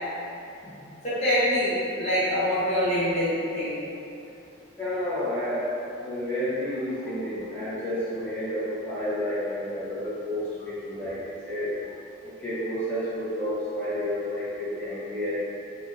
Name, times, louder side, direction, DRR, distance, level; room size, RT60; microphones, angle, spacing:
voice 1, 1.0-3.8 7.0-7.1, equal, 40° left, -11 dB, 0.6 m, -25 dB
voice 2, 4.8-5.7 6.0-11.8 12.4-15.4, left 1 dB, 10° left, -12 dB, 0.9 m, -30 dB
3.6 x 2.5 x 2.5 m, 2.8 s
head